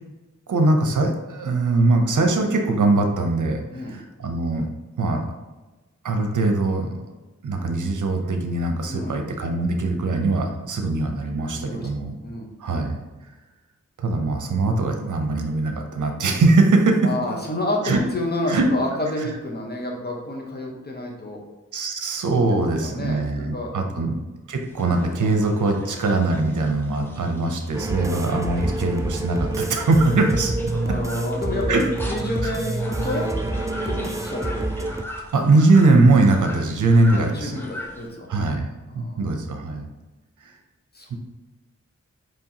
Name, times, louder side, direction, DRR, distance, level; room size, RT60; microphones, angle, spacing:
voice 1, 0.5-4.7 5.0-5.3 6.0-7.0 7.4-12.2 12.6-13.0 14.0-17.1 17.8-18.0 18.5-18.7 20.7-20.8 21.7-24.2 24.5-30.5 30.9-31.0 31.7-31.8 32.4-32.5 34.9-37.5 38.3-38.7 38.9-39.8 40.4-40.5 41.1-41.2, right 2 dB, 75° right, 4 dB, 0.7 m, -21 dB
voice 2, 8.9-9.2 11.5-11.9 12.2-12.5 17.0-21.4 22.8-24.1 27.9-28.2 30.8-33.4 33.8-34.7 37.1-38.3 38.9-39.2 40.9-41.1, left 1 dB, 30° left, -1 dB, 1.0 m, -30 dB
sound 1, 24.6-38.1, left 1 dB, 5° left, 0.8 m, -40 dB
sound 2, 27.7-35.0, right 2 dB, 10° right, 0.3 m, -27 dB
4.5 x 3.0 x 2.8 m, 1.2 s
cardioid pair, 55°, 30 cm